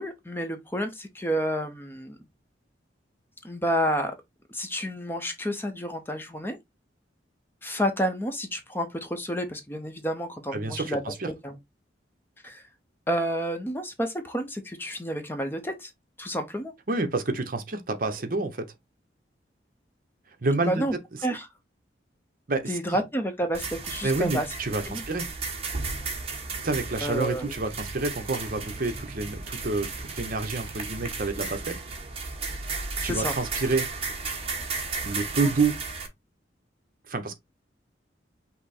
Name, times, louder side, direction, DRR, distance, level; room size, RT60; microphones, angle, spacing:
voice 1, 0.0-2.2 3.4-4.1 4.5-6.6 7.6-11.0 11.3-11.6 12.4-12.6 13.1-15.9 16.2-16.7 20.6-20.9 21.2-21.5 22.7-24.5 24.9-25.0 27.0-27.4 33.0-33.3, equal, 10° left, 0.7 m, -30 dB
voice 2, 10.5-11.3 16.9-18.7 20.4-20.8 22.5-23.0 24.0-25.3 26.6-31.7 33.0-33.9 35.0-35.7 37.1-37.4, right 3 dB, 50° right, 0.8 m, -28 dB
sound 1, 23.5-36.1, right 4 dB, 35° right, 1.1 m, -34 dB
5.8 x 2.1 x 4.2 m
head